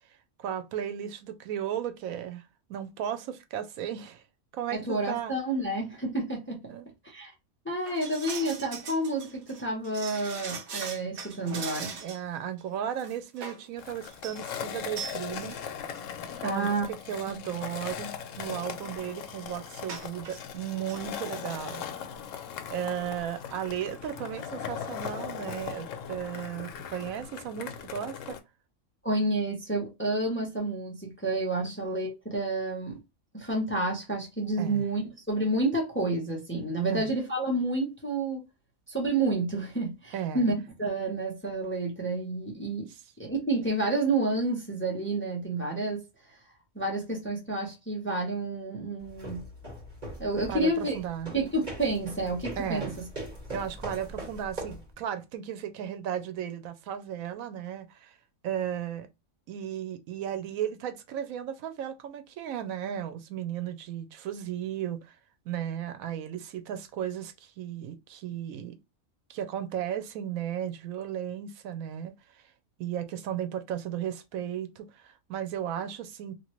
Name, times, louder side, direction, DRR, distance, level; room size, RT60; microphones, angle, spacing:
voice 1, 0.4-4.2 4.5-5.3 6.7-6.9 12.0-15.6 16.4-16.8 17.1-21.8 22.7-28.4 31.6-31.7 34.6-34.8 36.9-37.1 40.1-40.5 50.5-51.3 52.6-52.9 53.5-58.1 58.4-59.1 59.5-65.1 65.5-68.8 69.3-72.1 72.8-76.3, right 9 dB, 90° right, 1.0 m, -35 dB
voice 2, 4.7-6.8 7.0-7.3 7.6-12.0 16.4-16.9 17.3-17.5 29.0-33.0 33.3-38.4 38.9-42.9 43.2-46.0 46.7-49.4 50.2-51.0 51.3-53.1, right 2 dB, 10° left, 0.6 m, -30 dB
sound 1, 7.9-12.3 12.6-12.7 13.0-13.7 14.1-14.4 15.0-15.2 15.5-15.6 15.9-16.0 16.8-16.9 17.2-17.5 19.8-20.4 20.7-21.0 21.3-21.4, right 5 dB, 60° right, 1.0 m, -40 dB
Skateboard, 13.8-28.4, left 8 dB, 70° left, 0.9 m, -39 dB
sound 2, 49.0-54.9, right 1 dB, 35° right, 1.7 m, -41 dB
3.0 x 2.5 x 3.0 m
omnidirectional pair, 1.4 m